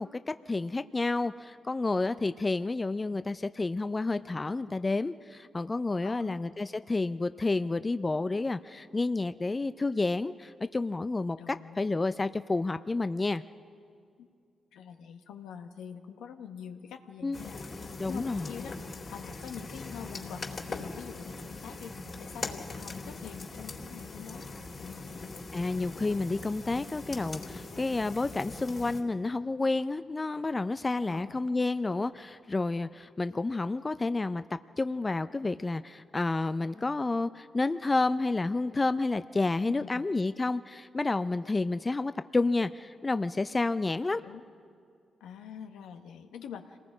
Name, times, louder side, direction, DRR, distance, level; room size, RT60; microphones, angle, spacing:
voice 1, 0.0-13.4 17.2-17.4 18.0-18.5 25.5-34.4 34.8-44.2, left 3 dB, 30° left, 12 dB, 0.5 m, -30 dB
voice 2, 6.0-6.4 11.4-11.9 14.2-14.3 14.7-17.6 18.1-18.8 19.1-21.9 22.2-24.5 24.8-25.3 31.1-31.5 39.7-40.1 44.1-44.4 45.2-46.8, left 8 dB, 80° left, 6 dB, 1.1 m, -45 dB
sound 1, 17.3-29.0, left 3 dB, 50° left, 3.7 m, -41 dB
27.0 x 19.0 x 5.0 m, 2.4 s
supercardioid pair, 45°, 0 cm